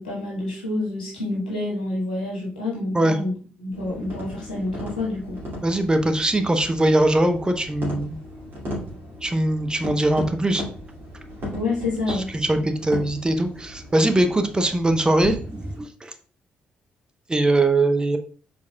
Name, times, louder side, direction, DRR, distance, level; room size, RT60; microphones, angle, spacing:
voice 1, 0.0-3.3 3.6-5.4 11.5-12.3 12.5-12.7, left 2 dB, 85° left, -5 dB, 1.4 m, -28 dB
sound 1, 3.7-15.8, left 1 dB, 50° right, 2.2 m, -36 dB
voice 2, 5.6-8.1 9.2-10.6 12.1-16.1 17.3-18.2, right 1 dB, 15° right, 6 dB, 0.6 m, -21 dB
4.8 x 4.1 x 2.2 m, 0.41 s
figure-of-eight pair, 45°, 5 cm